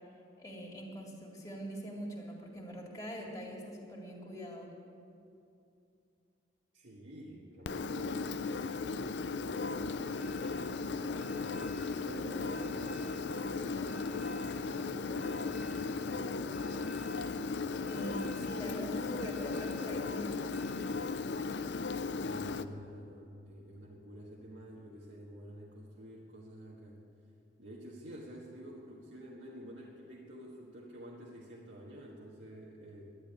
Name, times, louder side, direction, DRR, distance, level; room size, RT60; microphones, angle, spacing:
voice 1, 0.4-4.7 17.9-20.8, equal, 20° left, -2 dB, 2.3 m, -43 dB
voice 2, 6.7-10.4 11.3-16.8 22.2-27.0 27.6-33.1, right 1 dB, 85° right, -3 dB, 1.6 m, -49 dB
Engine, 7.7-22.6, left 4 dB, 75° left, 0.5 m, -36 dB
sound 1, 9.5-21.7, equal, 5° right, 1.0 m, -52 dB
11.5 x 10.5 x 9.8 m, 2.6 s
head